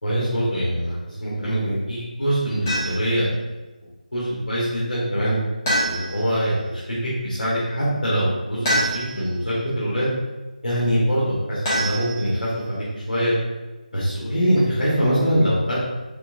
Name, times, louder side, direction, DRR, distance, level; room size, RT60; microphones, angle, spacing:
voice 1, 0.0-3.3 4.1-5.4 5.8-10.1 10.6-13.3 13.9-15.8, equal, 75° left, -9 dB, 1.4 m, -23 dB
sound 1, 2.7-3.2 5.7-6.4 8.6-9.4 11.6-12.5, equal, 20° left, 1.2 m, -25 dB
4.4 x 3.4 x 2.6 m, 1.1 s
figure-of-eight pair, 160°, 5 cm